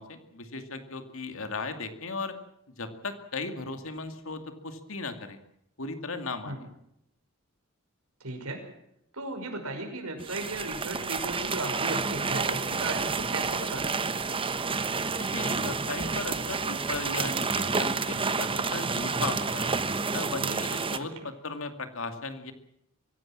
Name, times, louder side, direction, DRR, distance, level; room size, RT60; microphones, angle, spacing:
voice 1, 0.0-2.4 2.8-5.4 5.8-6.7 15.2-19.7 20.1-22.5, left 3 dB, 65° left, 7 dB, 2.5 m, -36 dB
voice 2, 8.2-8.6 9.1-14.0 21.0-21.3, right 2 dB, 85° right, 5 dB, 5.7 m, -36 dB
sound 1, 10.2-21.0, right 4 dB, 25° right, 1.0 m, -29 dB
24.0 x 16.5 x 7.5 m, 0.77 s
head